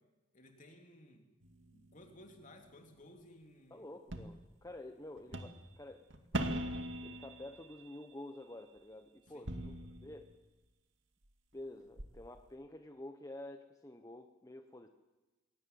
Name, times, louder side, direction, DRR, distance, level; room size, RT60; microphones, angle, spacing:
voice 1, 0.3-1.3 1.7-3.9 9.3-9.5, left 1 dB, 40° left, 4 dB, 3.1 m, -57 dB
sound 1, 1.4-2.8 4.1-4.3 5.2-5.7 6.1-8.0 9.3-10.3 11.2-11.3 12.0-12.1, right 1 dB, 65° right, 2.2 m, -41 dB
voice 2, 3.7-6.0 6.3-6.6 7.0-10.3 11.5-14.9, left 1 dB, 15° left, 6 dB, 1.1 m, -50 dB
21.0 x 18.0 x 9.4 m, 1.1 s
head